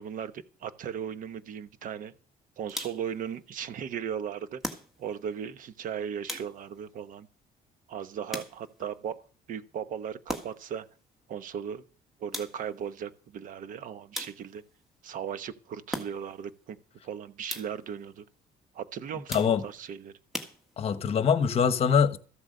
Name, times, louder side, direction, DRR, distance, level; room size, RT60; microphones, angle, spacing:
voice 1, 0.0-2.1 2.6-7.3 7.9-9.2 9.5-10.9 11.3-11.8 12.2-14.6 15.0-16.8 17.0-18.2 18.7-20.1, right 8 dB, 55° right, 1.1 m, -37 dB
sound 1, 2.7-3.2 4.6-5.3 6.3-6.9 8.3-8.9 10.3-10.8 12.3-12.8 14.1-14.7 15.9-16.5 17.5-17.9 19.3-19.8 20.3-21.1, left 1 dB, ahead, 1.7 m, -39 dB
voice 2, 19.3-19.6 20.8-22.2, left 7 dB, 40° left, 1.2 m, -23 dB
14.0 x 8.1 x 6.5 m
cardioid pair, 150°, 16 cm